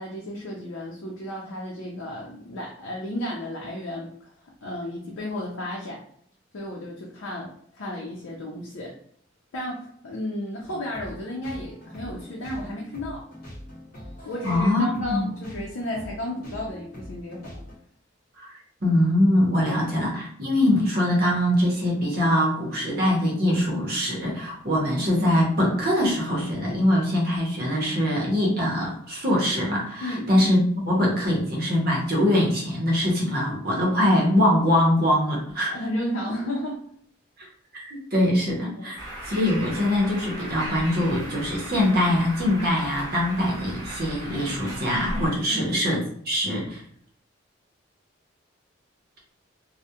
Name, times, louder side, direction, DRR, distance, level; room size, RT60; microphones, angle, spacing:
voice 1, 0.0-4.3 4.6-6.0 6.5-9.0 9.5-13.3 14.2-17.5 19.6-19.8 30.0-30.3 35.7-36.9 38.8-38.9 45.5-45.8, left 1 dB, 80° left, -2 dB, 0.5 m, -33 dB
sound 1, 10.6-17.8, equal, 45° left, 0.9 m, -42 dB
voice 2, 14.4-15.3 18.4-35.8 37.4-39.0 39.2-46.8, left 1 dB, 45° right, -2 dB, 0.7 m, -23 dB
Bird, 39.0-45.3, right 1 dB, 20° left, 0.9 m, -36 dB
2.3 x 2.1 x 2.8 m, 0.62 s
head